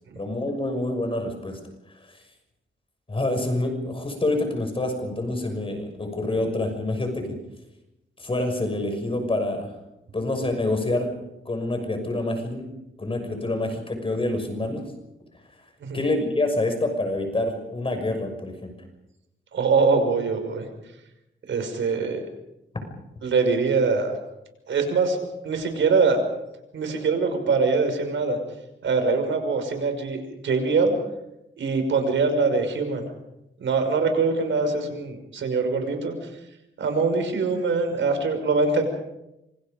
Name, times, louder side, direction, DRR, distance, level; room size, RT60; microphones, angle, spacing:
voice 1, 0.2-1.6 3.1-7.2 8.2-9.7 10.1-11.1 11.4-12.6 13.0-14.8 15.9-18.7, left 2 dB, 30° left, 5 dB, 6.3 m, -27 dB
voice 2, 19.5-20.6 21.5-22.2 23.2-24.1 24.7-25.2 25.4-26.2 26.7-28.4 28.8-30.9 31.6-33.1 33.6-36.3 36.8-38.8, right 4 dB, 80° right, 6 dB, 5.9 m, -23 dB
27.0 x 26.0 x 5.3 m, 0.90 s
wide cardioid pair, 110°, 19 cm